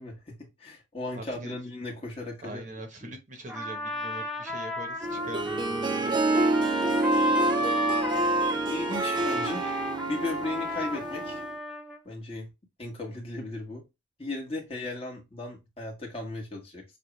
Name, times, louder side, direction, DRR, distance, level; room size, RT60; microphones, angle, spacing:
voice 1, 0.0-2.6 3.0-3.1 8.7-9.8 10.1-11.4 12.0-12.5 12.8-13.8 14.2-16.8, left 2 dB, 30° left, 1.5 m, -36 dB
voice 2, 1.1-1.5 2.4-6.1 14.8-14.9, right 1 dB, 40° right, 1.0 m, -43 dB
Trumpet, 3.5-12.0, equal, 5° right, 0.8 m, -31 dB
Harp, 5.0-11.5, right 2 dB, 25° right, 0.3 m, -28 dB
6.5 x 2.5 x 3.1 m
head